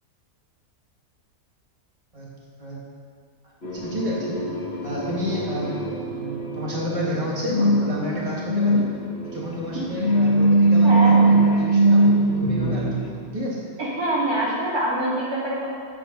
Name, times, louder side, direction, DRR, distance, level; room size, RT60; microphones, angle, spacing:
sound 1, 3.6-13.0, right 2 dB, 45° left, 1.9 m, -21 dB
voice 1, 3.7-4.5 4.8-5.8 6.1-8.9 9.2-13.6, equal, 20° right, -5 dB, 2.3 m, -30 dB
voice 2, 10.8-11.2 13.8-15.7, right 1 dB, 80° right, -7 dB, 3.7 m, -24 dB
18.0 x 8.4 x 4.2 m, 2.4 s
omnidirectional pair, 1.5 m